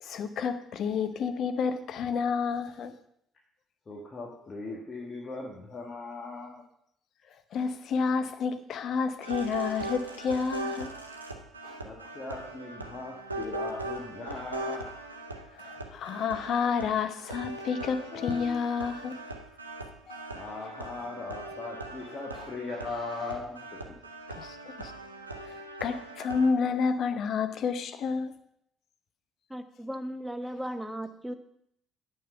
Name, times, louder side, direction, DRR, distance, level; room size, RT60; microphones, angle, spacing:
voice 1, 0.0-2.9 5.7-5.8 7.5-10.9 11.6-11.8 15.6-19.2 20.1-20.3 22.0-22.5 24.4-24.9 25.5-25.6 25.8-28.3, left 5 dB, 55° left, 9 dB, 0.8 m, -30 dB
voice 2, 3.9-6.6 11.8-14.8 20.3-24.0, left 3 dB, 35° left, -2 dB, 1.8 m, -39 dB
sound 1, 9.2-26.5, right 2 dB, 85° right, 0.6 m, -40 dB
voice 3, 29.5-31.3, equal, 5° right, 9 dB, 0.9 m, -36 dB
9.4 x 5.8 x 5.7 m, 0.73 s
figure-of-eight pair, 45°, 0 cm